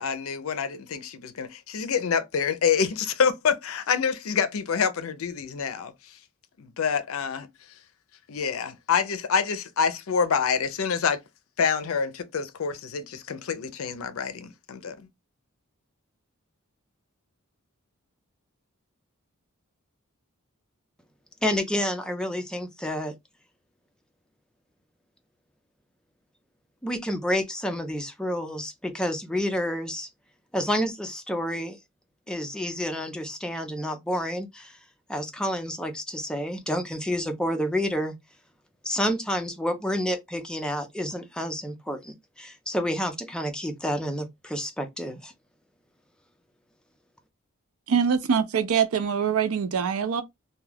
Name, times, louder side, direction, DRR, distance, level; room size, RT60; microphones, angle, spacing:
voice 1, 0.0-5.9 6.6-7.5 8.3-11.2 11.6-15.1, left 6 dB, 70° left, 0.5 m, -27 dB
voice 2, 21.4-23.1 26.8-30.1 30.5-31.8 32.3-34.8 35.1-38.1 38.8-45.3, equal, 5° left, 0.4 m, -29 dB
voice 3, 47.9-50.2, right 7 dB, 80° right, 0.5 m, -24 dB
2.3 x 2.2 x 3.2 m
head